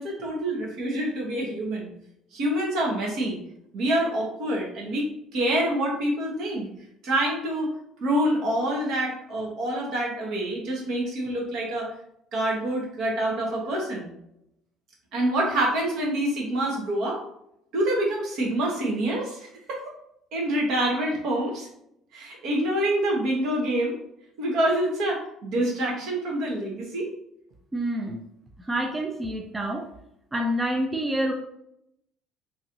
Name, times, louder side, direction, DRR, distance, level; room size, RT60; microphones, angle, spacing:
voice 1, 0.0-1.9 2.3-3.4 3.7-6.7 7.0-7.7 8.0-11.9 12.3-14.1 15.1-17.2 17.7-19.8 20.3-21.7 22.1-24.0 24.4-27.1, right 1 dB, 70° right, -1 dB, 1.1 m, -26 dB
voice 2, 27.7-28.2 28.6-29.9 30.3-31.3, right 1 dB, 20° right, 1 dB, 0.5 m, -27 dB
2.9 x 2.6 x 2.9 m, 0.77 s
supercardioid pair, 80°, 0 cm